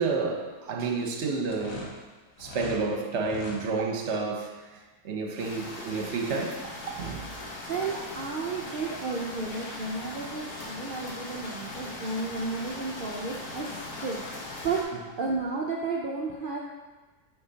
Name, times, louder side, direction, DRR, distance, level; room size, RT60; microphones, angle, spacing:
voice 1, 0.0-1.9 2.4-7.3 14.9-15.0, right 4 dB, 55° right, 2 dB, 0.9 m, -30 dB
sound 1, 1.5-2.8 3.2-3.6, left 1 dB, 60° left, 1.6 m, -41 dB
sound 2, 5.4-14.8, left 2 dB, 85° left, 1.7 m, -40 dB
voice 2, 7.7-13.7 14.0-14.2 14.6-14.9 15.2-16.6, right 4 dB, 75° right, -3 dB, 0.4 m, -32 dB
8.4 x 4.9 x 2.8 m, 1.3 s
omnidirectional pair, 1.7 m